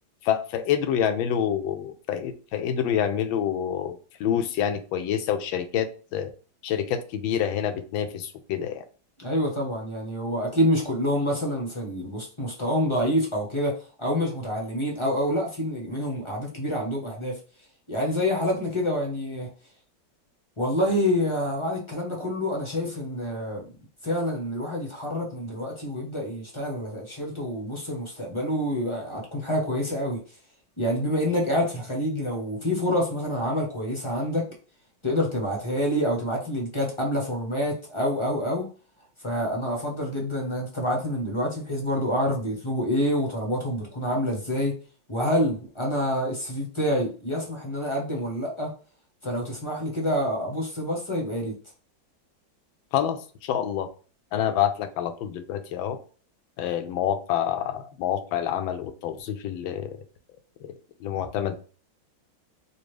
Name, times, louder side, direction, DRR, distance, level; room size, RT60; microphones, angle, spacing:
voice 1, 0.2-6.3 6.6-8.8 52.9-53.9 54.3-56.0 56.6-60.0 60.6-60.7 61.0-61.6, left 9 dB, 85° left, 9 dB, 1.4 m, -27 dB
voice 2, 9.2-17.4 17.9-19.5 20.6-23.6 24.0-30.2 30.8-34.5 35.0-38.7 39.2-44.7 45.1-48.7 49.2-51.5, equal, 25° left, -1 dB, 0.7 m, -27 dB
4.1 x 2.5 x 3.2 m, 0.38 s
omnidirectional pair, 2.1 m